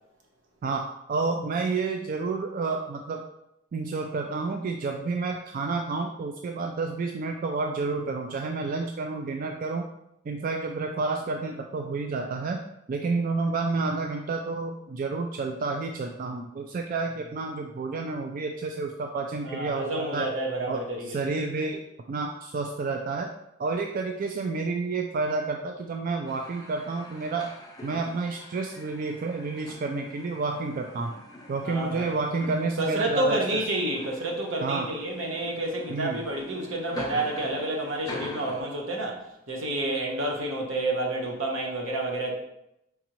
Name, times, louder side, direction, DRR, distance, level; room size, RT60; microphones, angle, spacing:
voice 1, 0.6-3.2 3.7-9.9 10.2-12.6 12.9-20.3 20.7-21.8 22.1-23.3 23.6-27.5 27.8-31.1 31.5-33.6 34.6-34.9 35.9-36.2, right 3 dB, 45° right, 3 dB, 0.3 m, -30 dB
voice 2, 19.4-21.2 31.6-32.2 32.8-39.2 39.5-42.3, right 1 dB, 75° right, 0 dB, 1.0 m, -29 dB
sound 1, 26.3-38.6, left 1 dB, 20° left, 0.6 m, -45 dB
5.0 x 3.5 x 3.0 m, 0.83 s
head